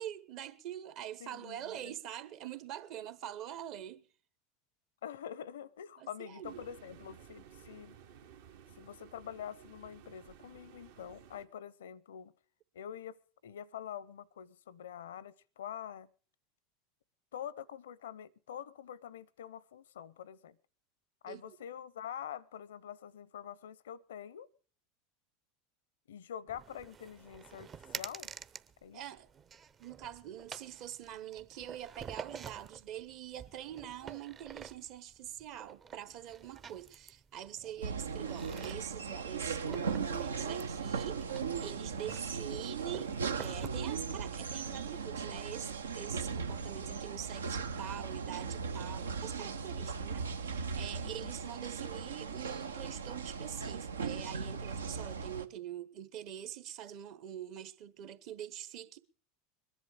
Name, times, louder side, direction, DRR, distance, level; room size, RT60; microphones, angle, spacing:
voice 1, 0.0-4.0 6.0-6.7 21.3-21.6 28.9-29.3 29.8-59.0, right 11 dB, 55° right, 1.2 m, -45 dB
voice 2, 1.2-1.9 5.0-8.0 8.8-12.3 12.7-13.2 13.4-16.1 17.3-20.6 21.2-24.5 26.1-27.7 28.0-28.3 28.8-29.0 51.0-51.3, left 9 dB, 75° left, 0.6 m, -46 dB
sound 1, 6.4-11.5, right 8 dB, 70° right, 1.4 m, -56 dB
sound 2, 26.5-43.7, right 7 dB, 30° right, 0.7 m, -49 dB
sound 3, 37.8-55.5, right 5 dB, 85° right, 0.8 m, -38 dB
21.5 x 11.0 x 5.0 m
hypercardioid pair, 85°, 0 cm